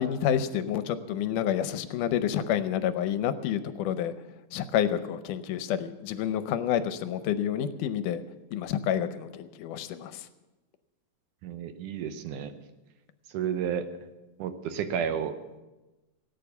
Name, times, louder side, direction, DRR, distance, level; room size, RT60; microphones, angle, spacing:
voice 1, 0.0-4.1 4.5-8.2 8.5-10.3, left 9 dB, 80° left, 11 dB, 2.1 m, -29 dB
voice 2, 11.4-12.5 13.3-13.8 14.4-15.3, right 8 dB, 75° right, 9 dB, 2.3 m, -31 dB
17.5 x 9.2 x 7.0 m, 1.1 s
omnidirectional pair, 3.8 m